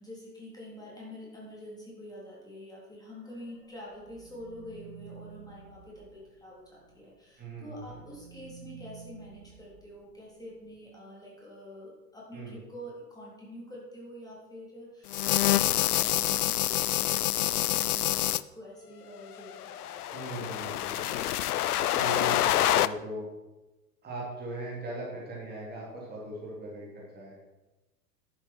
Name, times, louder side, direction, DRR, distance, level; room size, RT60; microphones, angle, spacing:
voice 1, 0.0-20.9, equal, 10° left, -6 dB, 3.6 m, -47 dB
sound 1, 3.1-7.0 7.4-10.8, right 7 dB, 50° right, 3.2 m, -52 dB
voice 2, 7.4-8.0 12.3-12.6 20.1-21.2 21.9-23.3 24.0-27.3, right 1 dB, 20° right, -5 dB, 3.4 m, -39 dB
sound 2, 15.1-18.4 19.5-22.9, left 13 dB, 70° left, 0.5 m, -27 dB
11.0 x 8.3 x 4.6 m, 1.1 s
figure-of-eight pair, 90°, 48 cm